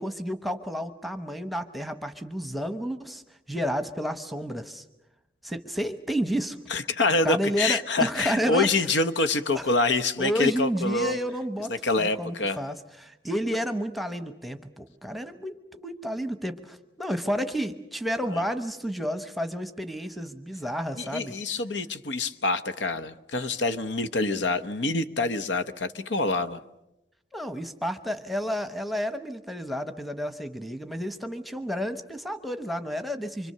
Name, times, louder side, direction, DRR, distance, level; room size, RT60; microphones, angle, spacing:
voice 1, 0.0-3.2 3.5-4.8 5.4-6.6 7.2-8.7 9.5-9.6 10.2-21.4 27.3-33.5, equal, ahead, 9 dB, 0.9 m, -31 dB
voice 2, 6.7-11.2 11.7-12.6 18.3-18.4 21.0-26.6, left 3 dB, 85° left, 12 dB, 1.0 m, -26 dB
25.0 x 25.0 x 6.7 m, 0.90 s
head